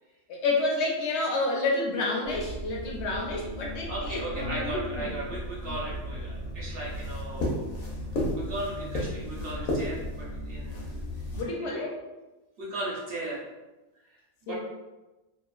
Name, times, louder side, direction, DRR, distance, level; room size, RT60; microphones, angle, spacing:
voice 1, 0.3-5.1 11.4-12.0 14.5-14.6, left 2 dB, 65° left, -1 dB, 0.7 m, -29 dB
sound 1, 2.2-11.4, left 1 dB, 85° left, 1.1 m, -34 dB
voice 2, 3.9-7.7 8.3-11.0 12.6-13.4 14.1-14.6, right 2 dB, 50° right, -4 dB, 0.8 m, -36 dB
2.9 x 2.4 x 2.3 m, 1.1 s
omnidirectional pair, 1.5 m